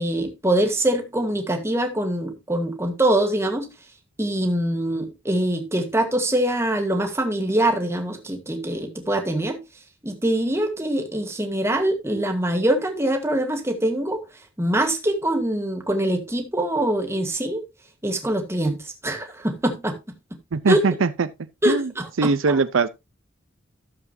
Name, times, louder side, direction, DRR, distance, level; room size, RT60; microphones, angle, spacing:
voice 1, 0.0-3.7 4.2-9.6 10.0-14.2 14.6-17.6 18.0-19.9 20.7-20.8 21.6-22.6, right 1 dB, 15° right, 1.6 m, -24 dB
voice 2, 20.5-21.3 21.7-21.9 22.2-22.9, right 4 dB, 75° right, 0.5 m, -21 dB
13.5 x 7.2 x 2.6 m
head